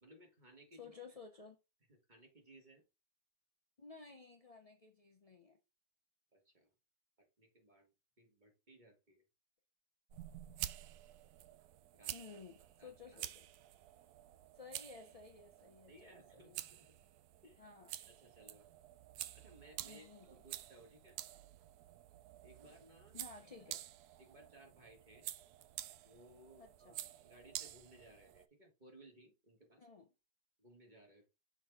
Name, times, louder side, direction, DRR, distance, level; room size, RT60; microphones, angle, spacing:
voice 1, 0.0-0.9 1.9-2.8 6.3-6.7 7.4-7.9 8.2-9.2 11.9-12.4 12.8-13.2 15.9-16.9 17.4-17.7 18.1-18.7 19.3-21.2 22.4-23.2 24.2-25.3 26.0-27.0 27.2-29.9 30.6-31.3, right 1 dB, 25° right, 1.9 m, -62 dB
voice 2, 0.8-1.6 3.8-5.6 12.1-13.5 14.5-16.6 17.6-17.9 19.8-20.3 23.1-23.8 26.6-27.0 29.8-30.1, left 4 dB, 65° left, 0.3 m, -55 dB
sound 1, 10.1-28.5, right 13 dB, 75° right, 1.1 m, -50 dB
6.1 x 4.5 x 3.7 m
omnidirectional pair, 1.8 m